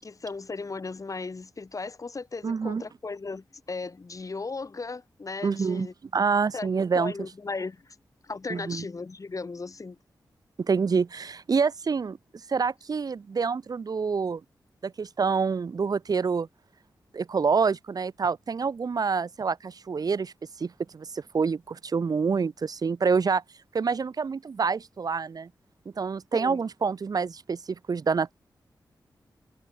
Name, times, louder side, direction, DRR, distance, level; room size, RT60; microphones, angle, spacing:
voice 1, 0.0-5.9 6.5-8.0 8.2-10.0 26.3-26.6, left 4 dB, 45° left, 5.5 m, -36 dB
voice 2, 2.4-2.8 5.4-5.9 6.1-7.1 8.5-8.8 10.6-12.2 12.5-14.4 14.8-16.5 17.1-20.3 20.6-23.4 23.7-25.5 26.0-28.3, right 5 dB, 55° right, 0.8 m, -27 dB
cardioid pair, 75°, 8 cm